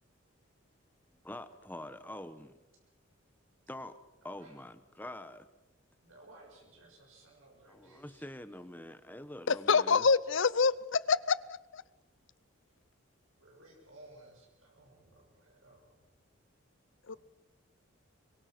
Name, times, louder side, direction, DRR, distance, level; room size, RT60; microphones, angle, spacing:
voice 1, 1.2-2.5 3.7-3.9 4.2-5.4 7.7-10.1, left 1 dB, 10° left, 1.1 m, -45 dB
voice 2, 6.0-8.2 13.4-16.0 17.1-17.2, right 2 dB, 80° right, 6.4 m, -58 dB
voice 3, 9.5-11.4 11.7-11.8 17.1-17.2, left 5 dB, 65° left, 0.7 m, -26 dB
25.0 x 23.0 x 6.0 m
head